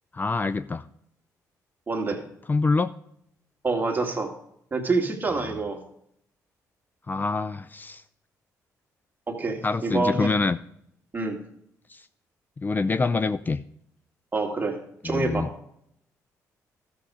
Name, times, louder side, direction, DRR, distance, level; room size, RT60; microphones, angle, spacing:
voice 1, 0.1-0.9 2.5-2.9 7.1-8.0 9.6-10.6 11.9-12.1 12.6-13.6 15.0-15.5, left 3 dB, 30° left, 14 dB, 0.4 m, -25 dB
voice 2, 1.9-2.2 3.6-4.3 4.7-5.8 9.3-10.3 11.1-11.4 14.3-14.8 15.0-15.5, right 3 dB, 25° right, 2 dB, 2.2 m, -26 dB
12.5 x 6.9 x 4.9 m, 0.72 s
supercardioid pair, 70°, 7 cm